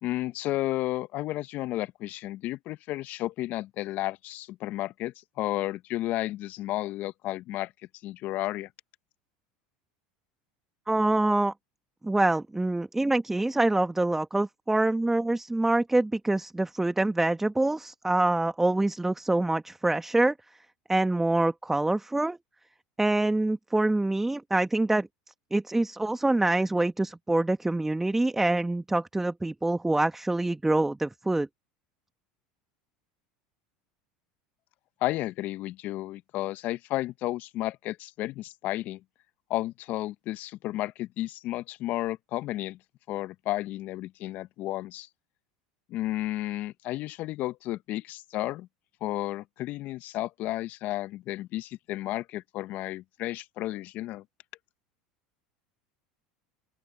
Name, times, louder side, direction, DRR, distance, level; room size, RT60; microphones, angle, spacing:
voice 1, 0.0-7.7 8.0-8.7 35.0-39.0 39.5-42.8 43.1-45.1 45.9-48.7 49.0-54.2, left 16 dB, 55° left, 1.1 m, -32 dB
voice 2, 10.9-11.5 12.0-20.3 20.9-22.4 23.0-25.1 25.5-31.5, right 2 dB, 10° right, 1.5 m, -25 dB
open air
hypercardioid pair, 90°, 4 cm